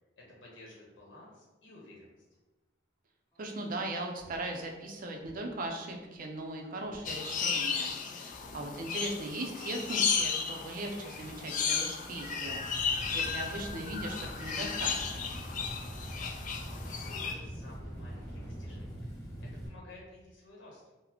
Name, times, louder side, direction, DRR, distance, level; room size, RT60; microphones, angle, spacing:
voice 1, 0.2-2.2 16.1-16.3 16.6-19.1 19.4-20.8, left 2 dB, 75° left, -3 dB, 1.0 m, -53 dB
Engine starting, 3.3-3.4 4.1-4.5 5.2-5.5 5.8-6.4 6.8-7.4 7.7-8.0 8.3-19.7, equal, 15° left, 1.0 m, -45 dB
voice 2, 3.4-12.9 13.1-15.3, right 1 dB, 45° right, 2 dB, 0.5 m, -39 dB
sound 1, 7.0-17.3, left 6 dB, 45° left, 0.3 m, -34 dB
3.9 x 2.0 x 2.9 m, 1.1 s
head